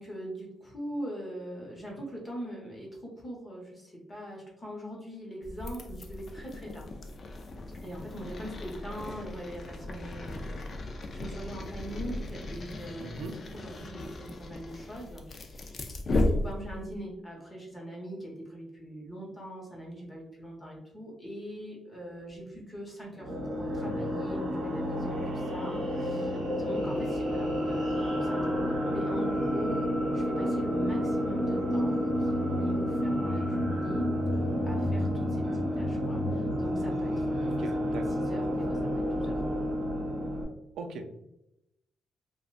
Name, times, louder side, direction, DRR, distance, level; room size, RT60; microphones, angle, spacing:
voice 1, 0.0-6.9 7.8-39.4, equal, 15° left, -2 dB, 0.9 m, -42 dB
sound 1, 5.4-17.0, left 2 dB, 35° left, 0.3 m, -36 dB
voice 2, 13.0-13.3 23.8-24.1 37.4-38.0 40.8-41.2, right 3 dB, 75° right, 5 dB, 0.4 m, -40 dB
sound 2, 23.2-40.4, equal, 50° right, 1.2 m, -30 dB
3.6 x 2.2 x 2.4 m, 0.85 s
cardioid pair, 150°, 0 cm